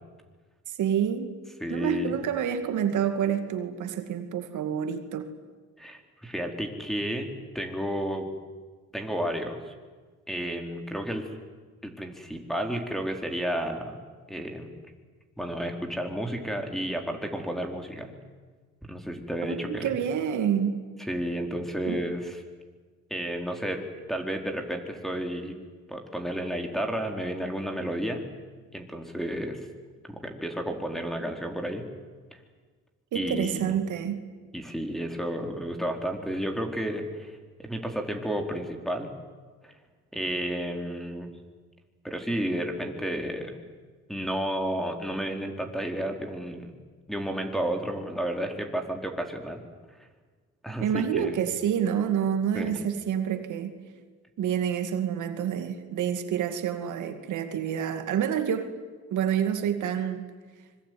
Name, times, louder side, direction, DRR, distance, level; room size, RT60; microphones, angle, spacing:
voice 1, 0.7-1.3 1.7-5.3 19.4-20.8 21.9-22.0 33.1-34.2 50.8-53.8 54.4-58.7 59.1-60.3, right 8 dB, 80° right, 7 dB, 2.4 m, -28 dB
voice 2, 1.6-2.1 5.8-8.3 8.9-9.7 10.3-11.3 11.8-14.0 14.3-14.7 15.4-18.1 18.8-19.9 21.1-22.4 23.1-23.8 24.1-25.5 25.9-28.2 28.7-29.7 30.0-31.9 32.3-32.4 33.1-33.8 34.5-39.1 39.6-39.7 40.1-41.3 42.0-43.5 44.1-46.7 47.1-49.6 50.6-51.4 52.5-52.8, equal, ahead, 4 dB, 4.3 m, -32 dB
25.5 x 22.5 x 9.5 m, 1.4 s
cardioid pair, 90°, 30 cm